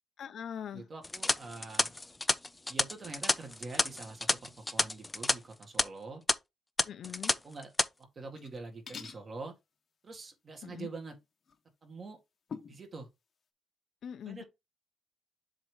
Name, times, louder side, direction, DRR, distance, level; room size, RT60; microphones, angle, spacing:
voice 1, 0.2-0.9 6.8-7.4 10.6-10.9 14.0-14.4, left 9 dB, 65° left, 0.8 m, -42 dB
voice 2, 0.7-1.9 2.7-6.2 7.4-7.7 8.0-9.5 10.0-11.1 11.8-12.2 12.7-13.1 14.3-14.4, right 3 dB, 35° right, 1.9 m, -45 dB
sound 1, 1.0-5.3 5.6-5.8 6.3-6.4 6.8-7.3 7.6-7.9, left 2 dB, 15° left, 0.4 m, -30 dB
sound 2, 8.2-8.6 8.9-9.2 11.5-11.6 12.5-12.8, left 6 dB, 45° left, 1.0 m, -44 dB
7.3 x 3.0 x 5.1 m
cardioid pair, 140°, 0 cm